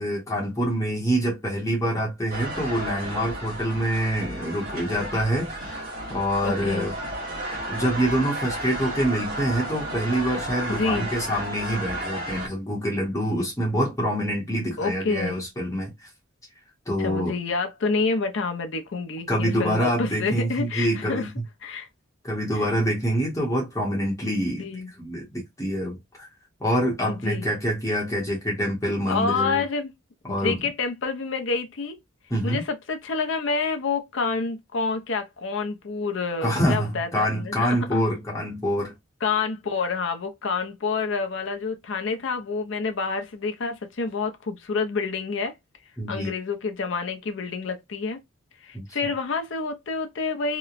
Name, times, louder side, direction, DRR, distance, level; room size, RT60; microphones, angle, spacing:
voice 1, 0.0-6.9 7.7-16.1 16.9-17.4 19.3-21.3 22.2-26.3 26.6-29.6 30.2-30.6 32.3-32.6 36.4-38.9 46.0-46.3 48.7-48.8, equal, 15° left, 0.8 m, -26 dB
sound 1, 2.3-12.5, right 1 dB, 45° right, 1.0 m, -33 dB
voice 2, 6.4-6.9 10.7-11.1 14.8-15.3 17.0-21.3 21.6-21.9 22.5-22.7 24.6-24.9 27.1-27.5 29.1-29.9 30.4-32.0 32.4-38.0 39.2-45.5 46.1-48.2 48.6-50.6, left 4 dB, 60° left, 0.5 m, -28 dB
2.9 x 2.1 x 2.4 m
head